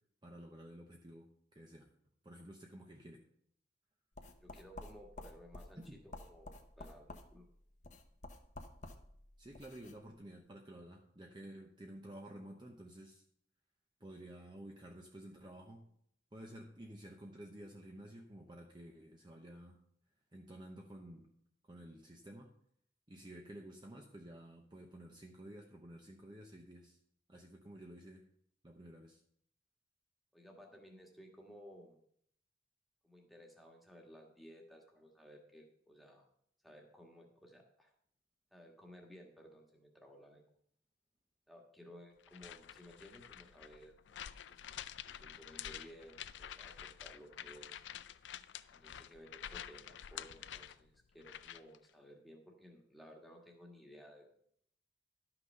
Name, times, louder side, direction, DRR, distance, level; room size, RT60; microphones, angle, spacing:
voice 1, 0.2-1.9 2.2-3.2 5.9-6.0 9.4-13.2 14.0-15.9 16.3-19.8 20.3-21.3 21.6-22.5 23.1-27.0 27.3-28.3 28.6-29.2, right 1 dB, 25° right, 1 dB, 0.8 m, -52 dB
sound 1, 4.1-10.0, left 2 dB, 40° left, 0.9 m, -52 dB
voice 2, 4.4-7.4 30.3-32.0 33.0-36.3 36.6-37.9 38.5-40.4 41.5-43.9 44.5-44.6 45.0-47.8 48.7-54.5, equal, ahead, 0 dB, 1.6 m, -57 dB
sound 2, 42.2-51.8, left 10 dB, 90° left, 0.4 m, -49 dB
12.0 x 5.9 x 5.4 m, 0.68 s
head